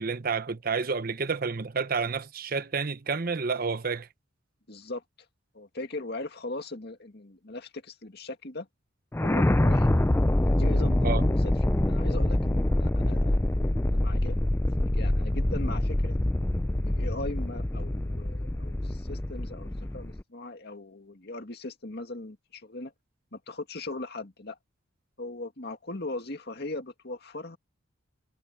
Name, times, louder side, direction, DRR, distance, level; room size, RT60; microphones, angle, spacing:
voice 1, 0.0-4.1 11.0-11.2, right 4 dB, 45° right, 0.8 m, -29 dB
voice 2, 4.7-5.0 5.5-8.7 9.2-9.9 10.5-14.6 14.9-16.2 16.7-22.9 23.3-24.6 25.2-27.6, left 2 dB, 55° left, 2.1 m, -39 dB
sound 1, 9.1-20.2, left 1 dB, 10° left, 0.4 m, -25 dB
head